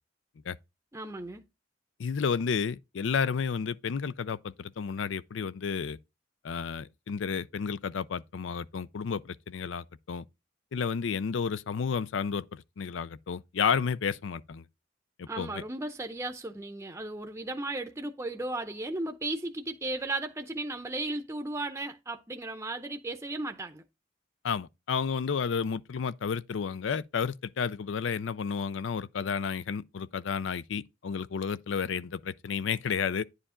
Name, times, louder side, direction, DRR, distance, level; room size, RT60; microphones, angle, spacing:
voice 1, 0.9-1.4 15.3-23.8, right 2 dB, 15° right, 0.6 m, -35 dB
voice 2, 2.0-6.0 6.4-10.2 10.7-14.7 15.2-15.6 24.4-33.2, left 6 dB, 90° left, 0.5 m, -31 dB
9.9 x 4.8 x 3.7 m
head